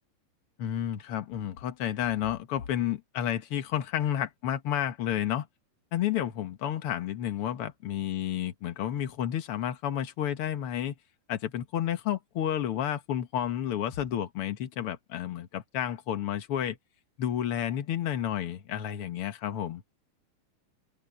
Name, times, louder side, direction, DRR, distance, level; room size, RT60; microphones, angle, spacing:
voice 1, 0.6-5.5 5.9-10.9 11.3-16.8 17.2-19.8, left 10 dB, 70° left, 1.3 m, -31 dB
open air
omnidirectional pair, 4.3 m